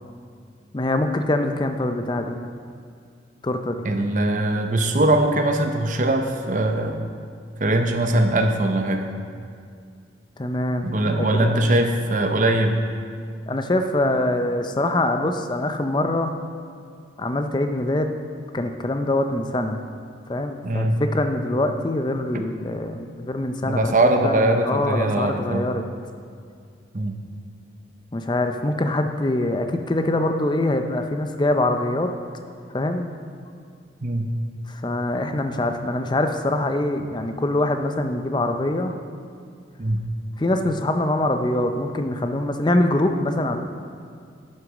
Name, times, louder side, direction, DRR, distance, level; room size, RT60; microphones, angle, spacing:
voice 1, 0.7-2.5 3.4-3.9 10.4-10.9 11.2-11.7 13.5-16.4 17.2-18.1 18.5-19.8 20.3-25.8 28.1-32.1 32.7-33.1 34.7-38.9 40.4-43.6, left 1 dB, 25° left, 6 dB, 0.5 m, -24 dB
voice 2, 3.8-7.0 7.6-9.1 10.8-12.8 20.6-21.0 22.3-22.4 23.6-25.6 26.9-27.2 34.0-34.3 39.8-40.1, right 1 dB, 45° right, 5 dB, 0.7 m, -21 dB
11.0 x 6.5 x 4.9 m, 2.2 s
head